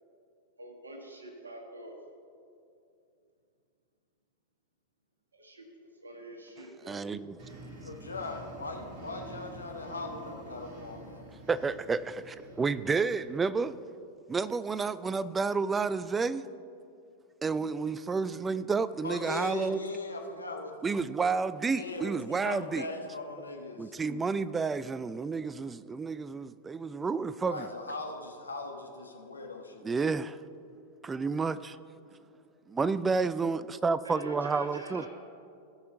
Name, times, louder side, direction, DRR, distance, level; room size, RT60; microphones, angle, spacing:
voice 1, 0.6-2.0 5.3-7.0 18.5-18.6 34.0-35.1, right 1 dB, 75° right, 2 dB, 1.4 m, -46 dB
voice 2, 6.9-7.4 11.5-13.7 14.3-16.4 17.4-19.8 20.8-22.9 23.8-27.7 29.8-30.4 31.0-31.8 32.7-35.0, right 4 dB, 15° right, 16 dB, 0.3 m, -30 dB
sound 1, 7.4-13.8, right 2 dB, 45° right, 2.1 m, -48 dB
voice 3, 7.8-11.3 19.0-20.9 21.7-23.9 27.5-30.0, left 3 dB, 80° left, 2 dB, 1.1 m, -39 dB
16.5 x 5.6 x 3.9 m, 2.5 s
figure-of-eight pair, 90°, 0 cm